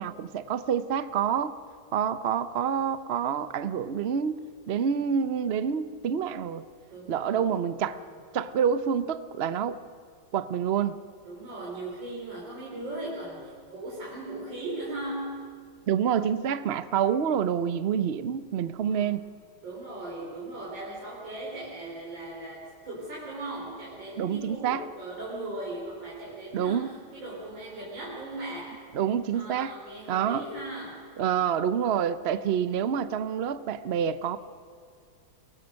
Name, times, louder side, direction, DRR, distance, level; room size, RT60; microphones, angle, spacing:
voice 1, 0.0-1.6 1.9-6.7 7.1-8.0 8.3-9.8 10.3-11.0 15.9-19.3 24.2-24.8 26.5-26.9 28.9-29.7 30.1-30.5 31.2-34.4, right 8 dB, 60° right, 14 dB, 0.6 m, -27 dB
voice 2, 6.9-8.1 11.2-15.7 18.9-19.1 19.6-28.8 29.3-31.1, right 2 dB, 90° right, -4 dB, 4.2 m, -38 dB
24.0 x 19.0 x 6.4 m, 2.2 s
omnidirectional pair, 2.0 m